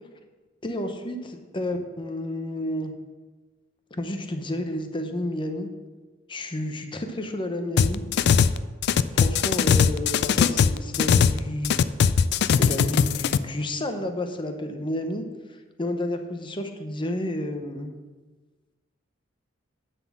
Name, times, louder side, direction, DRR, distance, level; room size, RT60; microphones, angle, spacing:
voice 1, 0.6-1.2 1.5-2.9 4.0-5.7 6.3-8.0 9.2-11.8 12.6-15.2 15.5-17.9, left 1 dB, 25° left, 6 dB, 0.8 m, -31 dB
sound 1, 7.8-8.6 8.8-11.4 11.6-13.4, left 7 dB, 55° left, 0.3 m, -20 dB
10.5 x 4.3 x 7.2 m, 1.3 s
head